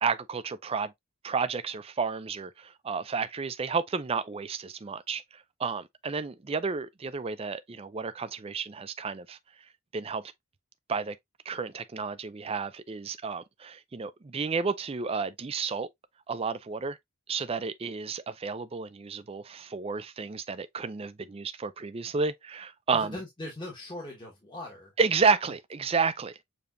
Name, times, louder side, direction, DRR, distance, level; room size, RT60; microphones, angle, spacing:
voice 1, 0.0-0.9 1.2-5.2 5.6-9.4 9.9-10.3 10.9-11.2 11.5-15.9 16.3-17.0 17.3-23.2 25.0-26.4, right 5 dB, 25° right, 0.4 m, -31 dB
voice 2, 22.9-24.9, left 1 dB, 20° left, 1.3 m, -40 dB
6.9 x 2.9 x 2.5 m
head